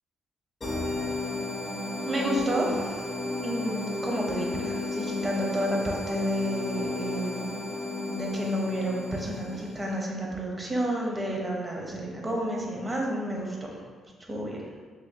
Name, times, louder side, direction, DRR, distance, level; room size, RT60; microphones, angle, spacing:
sound 1, 0.6-10.0, left 2 dB, 30° left, 0.7 m, -33 dB
voice 1, 2.1-3.1 3.4-7.6 8.1-13.8 14.3-14.7, equal, 25° right, -1 dB, 0.7 m, -30 dB
5.1 x 2.7 x 2.2 m, 1.5 s
cardioid pair, 90°, 0 cm